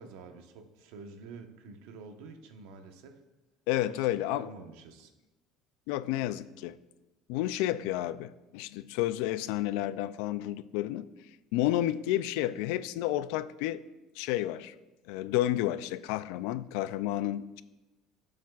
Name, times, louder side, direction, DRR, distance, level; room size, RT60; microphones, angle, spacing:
voice 1, 0.0-3.2 3.9-4.0 4.3-5.1, right 4 dB, 80° right, 1.1 m, -48 dB
voice 2, 3.7-4.5 5.9-6.8 7.3-11.1 11.5-13.8 14.2-14.7 15.1-17.6, left 14 dB, 80° left, 0.4 m, -31 dB
17.5 x 7.2 x 2.4 m
cardioid pair, 180°, 0 cm